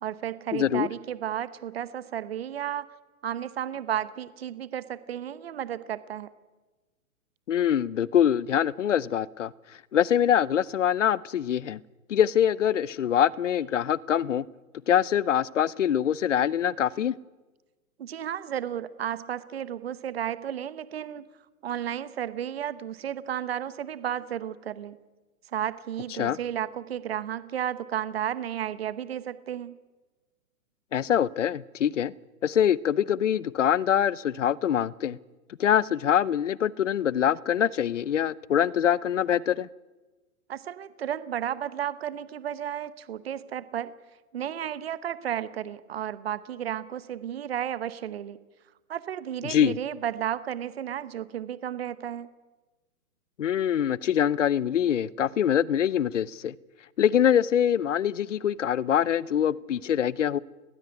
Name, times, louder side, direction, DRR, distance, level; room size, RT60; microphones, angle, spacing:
voice 1, 0.0-2.9 3.2-6.3 18.0-21.3 21.6-25.0 25.5-29.7 40.5-43.9 44.3-48.4 48.9-52.3, right 10 dB, 45° right, 15 dB, 1.0 m, -33 dB
voice 2, 0.5-0.9 7.5-9.5 9.9-11.8 12.1-14.4 14.9-17.1 26.2-26.4 30.9-32.1 32.4-35.2 35.6-39.7 49.4-49.8 53.4-56.5 57.0-60.4, left 9 dB, 55° left, 22 dB, 0.7 m, -24 dB
20.0 x 19.0 x 9.6 m, 1.2 s
hypercardioid pair, 180°, 44 cm